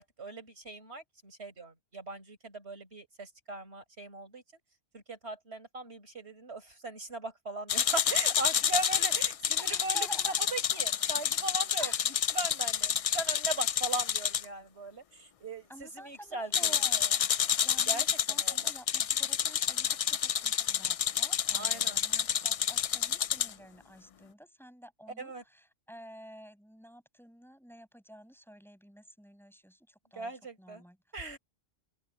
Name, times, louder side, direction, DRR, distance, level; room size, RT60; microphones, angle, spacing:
voice 1, 0.0-4.6 4.9-10.1 10.5-11.9 12.3-17.1 17.8-18.7 21.5-22.0 25.2-25.4 30.2-30.8 31.1-31.4, right 2 dB, 80° right, 5.2 m, -39 dB
sound 1, 7.7-14.5 16.5-23.5, left 8 dB, 60° left, 0.3 m, -29 dB
voice 2, 9.6-10.4 10.7-10.8 11.8-12.0 15.7-17.0 17.6-31.4, equal, ahead, 5.9 m, -50 dB
open air
omnidirectional pair, 1.1 m